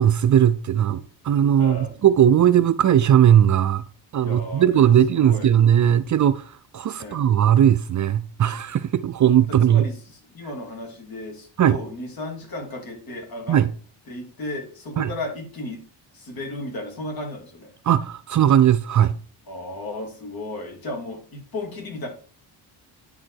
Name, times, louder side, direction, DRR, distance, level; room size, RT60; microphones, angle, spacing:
voice 1, 0.0-3.8 4.1-9.8 11.6-11.8 13.5-13.7 15.0-15.1 17.8-19.2, right 10 dB, 45° right, 0.5 m, -18 dB
voice 2, 1.6-1.9 4.2-5.5 7.0-7.2 9.6-9.9 10.3-13.6 14.1-15.8 16.1-17.7 19.5-22.1, left 1 dB, 50° left, 3.1 m, -34 dB
9.4 x 4.9 x 4.6 m
cardioid pair, 90°, 44 cm